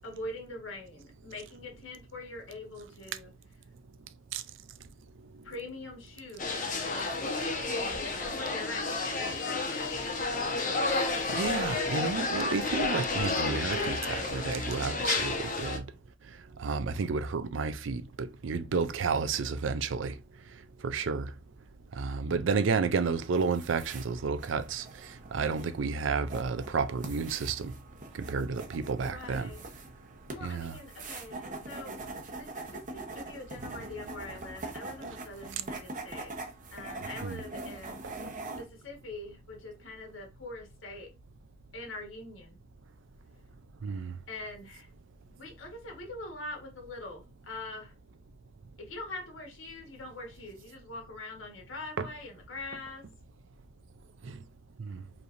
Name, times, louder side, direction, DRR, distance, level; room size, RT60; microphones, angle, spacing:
voice 1, 0.0-3.3 5.4-7.1 7.9-9.9 16.6-16.8 29.1-29.6 30.3-31.9 32.3-36.3 36.7-38.0 38.5-41.1 41.7-42.6 44.3-44.9 45.4-47.9 48.8-53.0, left 2 dB, 85° left, 1.5 m, -43 dB
sound 1, 6.4-15.8, left 3 dB, 45° left, 1.0 m, -31 dB
voice 2, 11.3-15.8 16.6-20.1 20.8-21.3 21.9-24.9 25.3-27.7 28.2-29.5 30.4-30.8 37.2-37.4 38.0-38.1 43.8-44.1 52.0-52.1 54.2-54.4 54.8-55.0, right 5 dB, 70° right, 0.4 m, -31 dB
sound 2, 23.0-38.6, right 2 dB, 45° right, 0.9 m, -43 dB
4.9 x 3.3 x 2.6 m
head